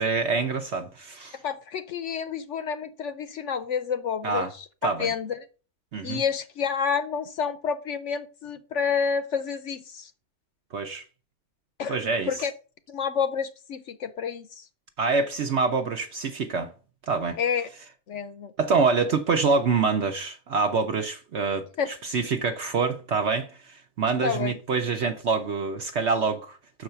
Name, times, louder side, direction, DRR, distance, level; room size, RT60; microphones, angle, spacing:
voice 1, 0.0-1.4 4.2-4.5 4.8-5.1 5.9-6.2 10.7-11.0 11.9-12.3 15.0-16.7 17.0-17.4 18.6-26.8, right 4 dB, 55° right, 0.9 m, -26 dB
voice 2, 1.4-5.5 6.0-10.1 11.8-12.0 12.3-12.5 12.9-14.7 17.4-17.7 18.1-18.5 21.8-21.9 24.2-24.6, left 6 dB, 60° left, 0.9 m, -29 dB
6.5 x 4.8 x 5.7 m
omnidirectional pair, 1.6 m